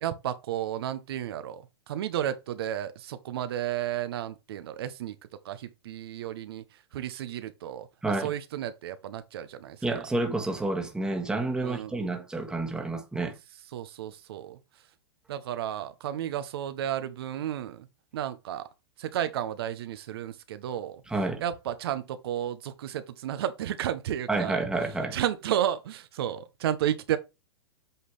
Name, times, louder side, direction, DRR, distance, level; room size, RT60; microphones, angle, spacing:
voice 1, 0.0-5.2 5.4-6.6 6.9-9.8 11.6-11.9 13.7-14.6 15.3-17.9 18.1-18.6 19.0-21.0 21.4-24.6 25.1-27.2, right 11 dB, 65° right, 0.9 m, -32 dB
voice 2, 8.0-8.3 9.8-13.3 21.1-21.4 24.3-25.2, right 2 dB, 5° right, 1.5 m, -29 dB
8.0 x 4.0 x 3.4 m
hypercardioid pair, 125°, 14 cm